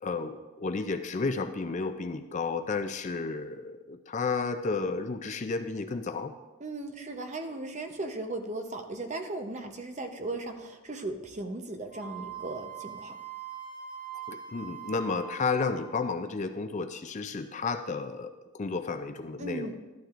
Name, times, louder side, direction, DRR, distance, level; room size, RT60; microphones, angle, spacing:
voice 1, 0.0-6.3 14.3-19.7, left 4 dB, 30° left, 8 dB, 0.4 m, -32 dB
voice 2, 6.6-13.2 19.4-19.8, right 2 dB, 30° right, 5 dB, 0.7 m, -37 dB
Wind instrument woodwind instrument, 11.9-16.0, right 8 dB, 10° right, 2.7 m, -42 dB
13.0 x 11.5 x 2.5 m, 1.2 s
head